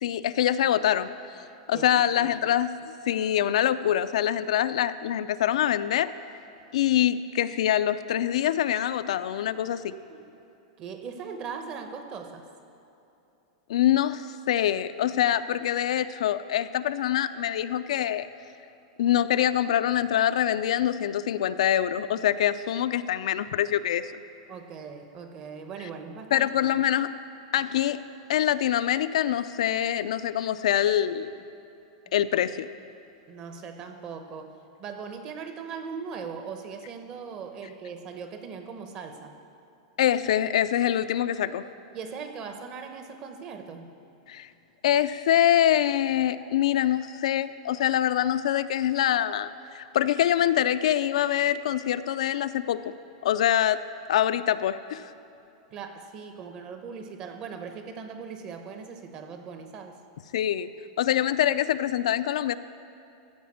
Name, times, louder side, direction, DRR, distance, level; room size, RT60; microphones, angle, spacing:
voice 1, 0.0-1.1 1.7-6.1 6.7-10.0 13.7-18.3 19.0-24.1 26.3-27.1 27.5-28.0 28.3-31.4 32.1-32.7 40.0-41.6 44.3-44.5 44.8-52.8 53.2-53.8 54.1-55.1 60.3-60.7 61.0-62.6, left 11 dB, 75° left, 12 dB, 0.4 m, -25 dB
voice 2, 1.7-2.3 9.8-10.2 10.8-12.4 24.5-26.5 33.3-39.4 41.9-43.9 55.7-60.0, right 6 dB, 25° right, 7 dB, 0.9 m, -39 dB
15.0 x 5.1 x 8.5 m, 2.8 s
supercardioid pair, 170°, 3 cm